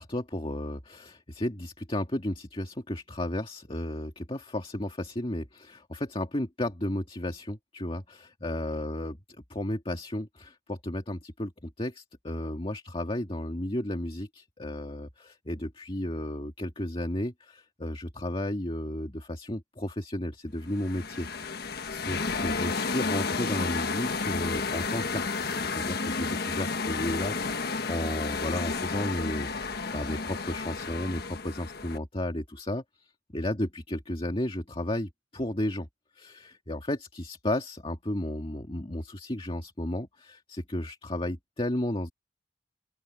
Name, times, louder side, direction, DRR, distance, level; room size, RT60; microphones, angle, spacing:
voice 1, 0.0-9.2 9.5-21.5 21.9-35.9 36.2-42.1, left 1 dB, 30° left, 1.9 m, -33 dB
sound 1, 20.7-32.0, left 4 dB, 60° left, 1.4 m, -32 dB
open air
head